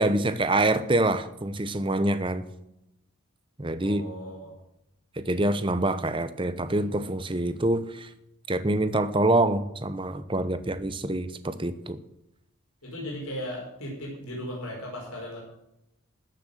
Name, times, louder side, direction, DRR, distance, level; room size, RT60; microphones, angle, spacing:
voice 1, 0.0-2.5 3.6-4.0 5.2-8.1 8.5-12.0, right 2 dB, 25° right, 12 dB, 0.8 m, -26 dB
voice 2, 3.8-4.5 6.7-6.8 12.8-15.4, equal, 80° left, -3 dB, 4.7 m, -37 dB
14.0 x 6.8 x 7.7 m, 0.84 s
head